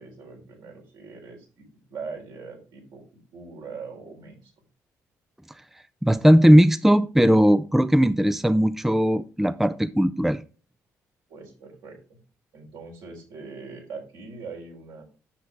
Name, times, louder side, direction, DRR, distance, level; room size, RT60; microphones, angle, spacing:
voice 1, 0.0-4.5 11.3-12.2 12.5-15.0, right 4 dB, 70° right, 0 dB, 4.0 m, -41 dB
voice 2, 6.0-10.4, equal, 5° right, 14 dB, 0.5 m, -18 dB
10.0 x 7.6 x 3.4 m, 0.34 s
hypercardioid pair, 45°, 8 cm